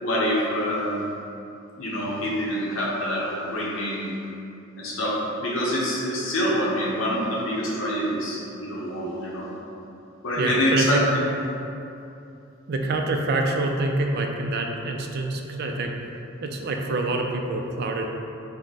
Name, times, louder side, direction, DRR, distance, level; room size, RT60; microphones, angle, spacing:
voice 1, 0.0-1.0 1.8-4.2 4.8-9.5 10.2-11.3, equal, 65° left, -5 dB, 0.7 m, -26 dB
voice 2, 10.4-11.0 12.7-15.9 16.4-18.1, right 2 dB, 50° right, 2 dB, 0.4 m, -26 dB
4.6 x 2.1 x 3.9 m, 2.8 s
head